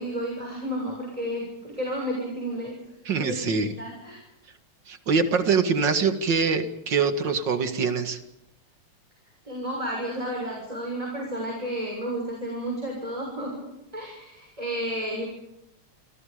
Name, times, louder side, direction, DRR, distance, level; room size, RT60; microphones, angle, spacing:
voice 1, 0.0-2.8 3.1-4.2 9.4-13.6 13.9-15.3, equal, 15° right, -1 dB, 6.7 m, -32 dB
voice 2, 3.1-3.7 4.9-8.2, right 5 dB, 55° right, 8 dB, 2.6 m, -24 dB
27.5 x 27.0 x 5.2 m, 0.85 s
omnidirectional pair, 2.4 m